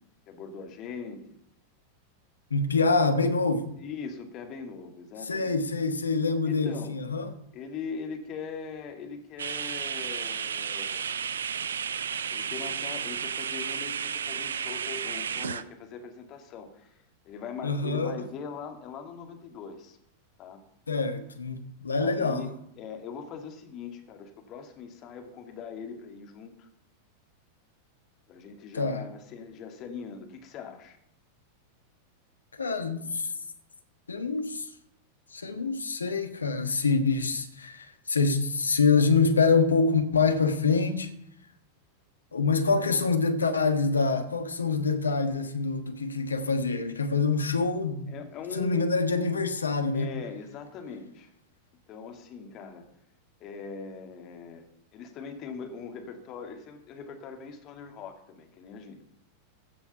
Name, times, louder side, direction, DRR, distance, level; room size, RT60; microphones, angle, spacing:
voice 1, 0.3-1.2 3.8-5.6 6.4-6.9 7.5-11.2 12.3-17.0 17.2-20.0 20.4-20.6 22.0-26.7 28.3-31.0 48.1-48.9 49.9-51.3 51.9-52.9 53.4-54.6 54.9-59.0, left 5 dB, 35° left, 2.1 m, -41 dB
voice 2, 2.5-3.7 5.2-7.3 17.6-18.1 20.9-22.5 28.7-29.0 32.6-33.3 34.1-34.7 35.3-41.1 42.3-48.1 48.5-50.1, left 4 dB, 75° left, 1.3 m, -26 dB
sound 1, 9.4-15.6, right 7 dB, 65° right, 0.5 m, -33 dB
15.0 x 7.1 x 5.7 m
figure-of-eight pair, 90°, 0 cm